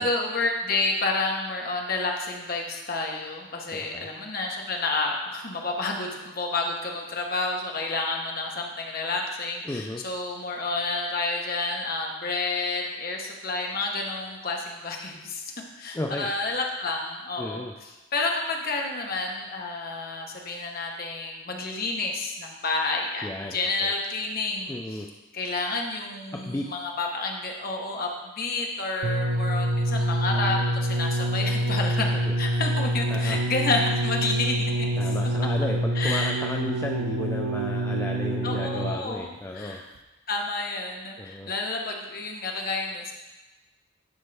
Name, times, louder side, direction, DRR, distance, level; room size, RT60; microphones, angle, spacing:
voice 1, 0.0-15.4 15.8-25.0 25.3-32.1 32.4-34.9 36.0-36.4 38.4-39.3 39.5-39.8 40.3-43.1, left 3 dB, 45° left, 1 dB, 1.0 m, -30 dB
voice 2, 3.7-4.1 9.7-10.0 15.9-16.3 17.4-17.7 23.2-23.9 24.7-25.1 26.3-26.7 32.1-32.3 33.1-33.4 35.0-39.8 41.2-41.5, left 1 dB, 15° left, 0 dB, 0.3 m, -33 dB
sound 1, 29.0-39.1 40.0-40.1, right 1 dB, 80° right, 0.6 m, -26 dB
11.0 x 4.5 x 3.3 m, 1.1 s
head